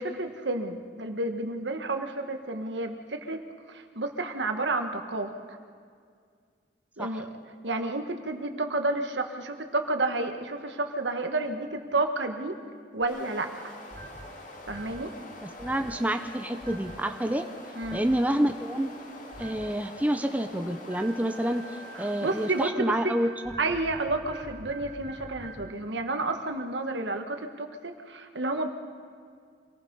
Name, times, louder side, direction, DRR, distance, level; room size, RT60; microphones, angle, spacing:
voice 1, 0.0-3.4 3.7-5.3 7.0-7.3 7.6-12.6 12.9-13.7 14.7-15.1 17.7-18.0 21.9-23.1 23.6-28.7, right 2 dB, 80° right, 6 dB, 1.5 m, -30 dB
sound 1, 13.0-22.7, left 1 dB, 45° left, 2.1 m, -45 dB
sound 2, 13.9-14.3 14.7-15.0 15.6-16.0 16.6-17.0 17.8-18.2 19.3-19.7 20.9-25.7, right 2 dB, 45° right, 4.3 m, -45 dB
voice 2, 15.4-17.5 17.9-18.9 19.4-21.6 22.0-23.3, right 1 dB, 10° right, 6 dB, 0.7 m, -28 dB
26.5 x 18.5 x 5.5 m, 2.1 s
head